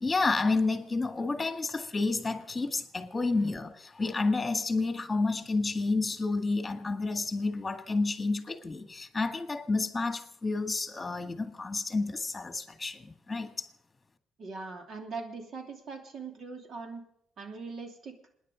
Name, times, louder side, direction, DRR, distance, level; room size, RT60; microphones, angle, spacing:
voice 1, 0.0-13.7, left 3 dB, 20° left, 2.0 m, -30 dB
voice 2, 14.4-17.0 17.4-18.2, right 4 dB, 60° right, 3.0 m, -41 dB
27.5 x 10.0 x 5.1 m
cardioid pair, 90°, 0 cm